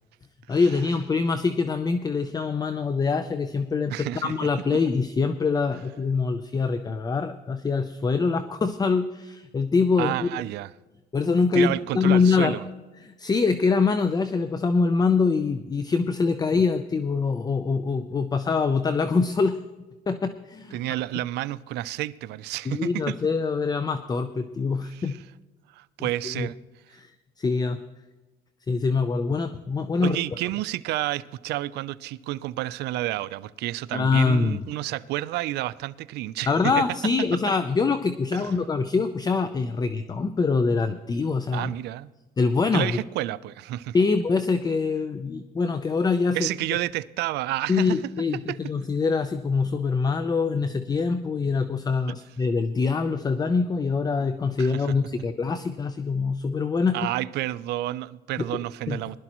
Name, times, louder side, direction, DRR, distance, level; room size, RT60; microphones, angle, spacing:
voice 1, 0.5-10.3 11.1-12.6 13.0-19.6 20.1-20.8 22.7-25.2 26.0-26.5 26.9-27.1 27.4-27.8 28.7-30.2 33.9-34.6 36.5-41.7 42.4-43.0 43.9-46.5 47.7-57.1 58.9-59.0, left 4 dB, 25° left, 0.6 m, -24 dB
voice 2, 3.9-4.3 10.0-10.7 11.5-12.7 20.7-23.2 24.9-25.2 25.7-26.6 30.0-36.9 38.3-38.4 41.5-42.1 42.7-44.0 46.3-48.0 48.3-48.6 54.6-54.9 56.9-59.2, right 16 dB, 80° right, 0.5 m, -30 dB
20.5 x 12.0 x 3.0 m
cardioid pair, 110°, 17 cm